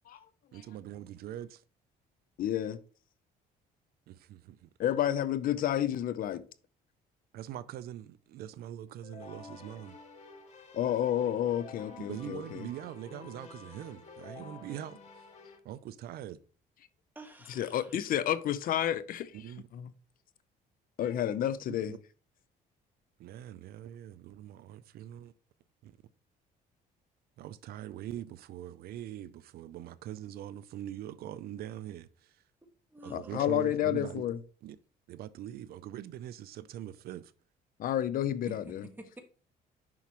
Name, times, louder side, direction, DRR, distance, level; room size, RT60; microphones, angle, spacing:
voice 1, 0.5-1.6 4.1-4.7 7.3-10.0 12.0-15.0 15.6-16.4 19.3-19.6 21.7-22.0 23.2-25.3 25.8-26.0 27.4-32.4 33.0-34.2 34.6-34.8 35.1-37.3, right 12 dB, 65° right, 0.4 m, -43 dB
voice 2, 2.4-2.8 4.8-6.4 10.7-12.7 17.6-19.4 19.7-19.9 21.0-22.0 33.1-34.4 37.8-38.8, left 11 dB, 60° left, 0.6 m, -30 dB
Keyboard (musical), 9.0-15.6, left 4 dB, 45° left, 1.7 m, -50 dB
voice 3, 17.1-18.0 32.9-33.5 38.5-39.2, right 1 dB, 10° right, 1.5 m, -48 dB
7.1 x 5.8 x 3.0 m
cardioid pair, 110°, 17 cm